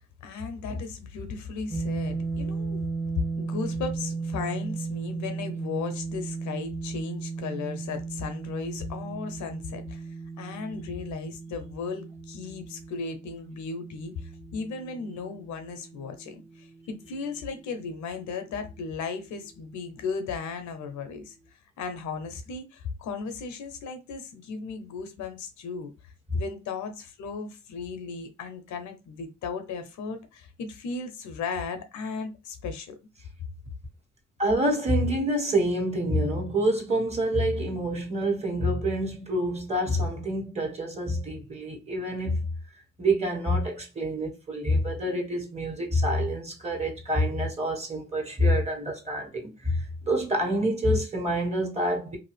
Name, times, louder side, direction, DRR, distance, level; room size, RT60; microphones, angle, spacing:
voice 1, 0.2-2.9 3.2-21.4 21.8-32.9, left 5 dB, 75° left, 0.7 m, -36 dB
sound 1, 1.7-17.7, right 4 dB, 10° left, 0.6 m, -36 dB
voice 2, 34.4-42.5 43.0-52.2, equal, 20° right, 1.4 m, -27 dB
2.6 x 2.4 x 3.3 m
supercardioid pair, 55°, 30 cm